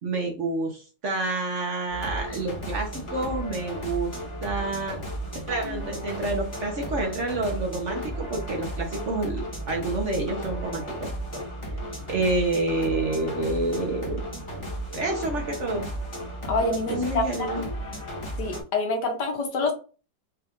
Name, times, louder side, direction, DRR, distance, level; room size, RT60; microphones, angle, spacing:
voice 1, 0.0-4.1 4.4-5.0 5.3-11.4 12.1-14.2 14.9-15.8 16.9-17.7, right 2 dB, 50° right, 1 dB, 1.0 m, -28 dB
sound 1, 1.9-18.6, right 1 dB, 20° left, 1.2 m, -34 dB
voice 2, 16.4-17.7 18.4-19.7, left 3 dB, 75° left, 2 dB, 1.8 m, -27 dB
4.4 x 2.5 x 3.6 m, 0.35 s
omnidirectional pair, 1.9 m